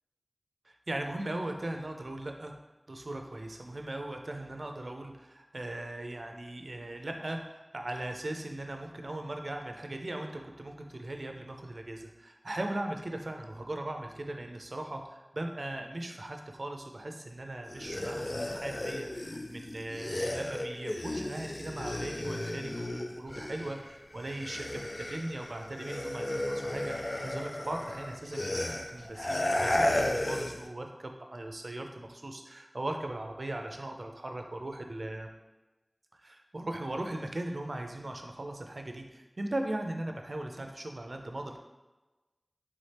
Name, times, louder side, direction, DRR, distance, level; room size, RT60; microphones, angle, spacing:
voice 1, 0.7-2.5 2.9-35.3 36.1-41.6, right 1 dB, 85° right, 4 dB, 0.4 m, -39 dB
sound 1, 17.7-23.9 24.2-30.7, left 1 dB, 60° left, 0.3 m, -34 dB
4.1 x 3.6 x 3.3 m, 1.1 s
wide cardioid pair, 45°, 0 cm